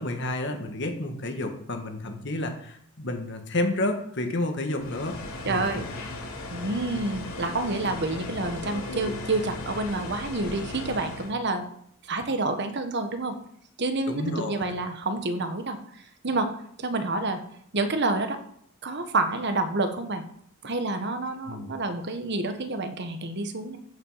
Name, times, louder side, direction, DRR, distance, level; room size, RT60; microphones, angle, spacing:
voice 1, 0.0-5.2 5.5-5.7 14.1-14.7 21.5-21.7, left 1 dB, 55° left, 5 dB, 1.8 m, -30 dB
sound 1, 4.8-11.3, left 2 dB, 80° left, 2.6 m, -37 dB
voice 2, 5.4-5.9 6.5-11.6 12.1-13.3 13.8-15.8 16.2-16.5 16.8-17.4 17.7-18.4 18.8-20.2 20.6-23.8, right 2 dB, 50° right, 7 dB, 1.3 m, -28 dB
15.0 x 5.8 x 5.7 m, 0.69 s
head